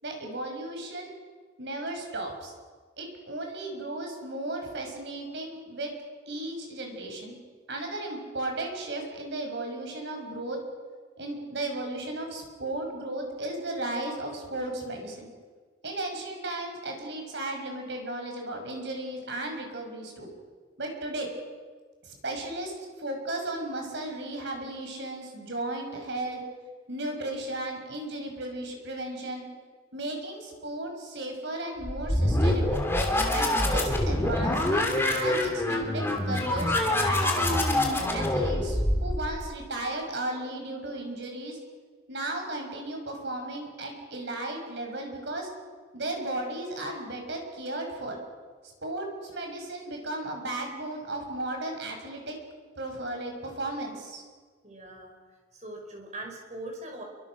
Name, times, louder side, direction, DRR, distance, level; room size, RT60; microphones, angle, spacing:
voice 1, 0.0-1.1 1.6-2.5 3.0-5.9 6.3-7.4 7.7-10.6 11.2-15.3 15.8-20.3 20.8-21.3 22.0-26.4 26.9-29.4 29.9-32.8 33.3-37.6 38.1-41.6 42.1-45.5 45.9-48.2 48.8-52.4 52.8-54.2, right 2 dB, 60° right, 2 dB, 5.9 m, -35 dB
sound 1, 31.8-39.5, left 1 dB, 10° left, 3.0 m, -25 dB
voice 2, 54.6-55.1 55.5-57.0, right 1 dB, 35° right, 2 dB, 5.5 m, -41 dB
28.0 x 24.0 x 6.2 m, 1.5 s
head